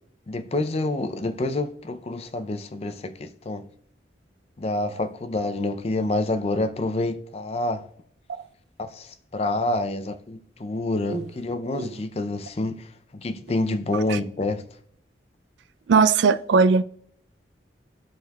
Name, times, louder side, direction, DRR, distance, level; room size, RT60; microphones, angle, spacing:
voice 1, 0.3-3.7 4.6-7.8 8.8-14.6, left 2 dB, 35° left, 0.4 m, -28 dB
voice 2, 15.9-16.8, right 5 dB, 75° right, 0.3 m, -19 dB
13.5 x 4.5 x 2.3 m
head